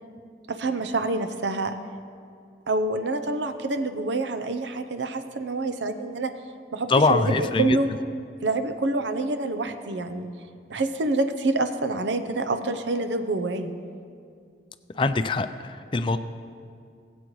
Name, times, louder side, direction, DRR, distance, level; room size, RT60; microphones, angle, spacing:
voice 1, 0.5-1.7 2.7-6.3 6.7-7.9 8.4-10.3 10.7-13.7, right 2 dB, 85° right, 8 dB, 0.7 m, -27 dB
voice 2, 6.9-7.8 14.9-16.2, left 3 dB, 30° left, 10 dB, 0.4 m, -23 dB
20.0 x 8.1 x 3.1 m, 2.3 s
head